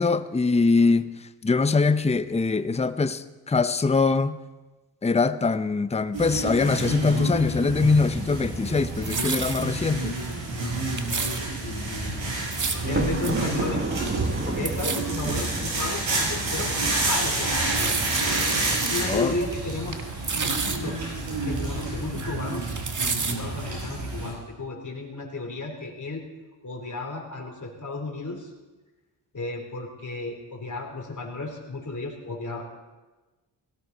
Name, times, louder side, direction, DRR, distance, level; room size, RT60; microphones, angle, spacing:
voice 1, 0.0-4.4 5.0-10.2 19.1-19.3, left 4 dB, 15° left, 0.6 m, -23 dB
sound 1, 6.1-24.3, right 2 dB, 70° right, 6.1 m, -29 dB
sound 2, 8.7-9.6 10.2-10.3 10.6-11.4 12.3-12.8 13.2-13.3 13.6-13.7 14.0-14.3 14.6-15.0 15.6-15.7 16.2-16.3 17.4-19.1 19.4-19.5 19.8-20.8 21.2-22.2 22.5-23.3 23.8-23.9, right 4 dB, 40° right, 1.7 m, -30 dB
voice 2, 10.5-11.3 11.6-12.3 12.8-13.9 14.5-18.1 18.9-20.0 20.8-22.8 23.3-26.2 26.6-28.5 29.3-32.6, left 2 dB, 40° left, 3.8 m, -34 dB
Thunder, 12.7-16.9, right 3 dB, 25° right, 1.3 m, -32 dB
18.0 x 16.5 x 4.2 m
cardioid pair, 60°, 46 cm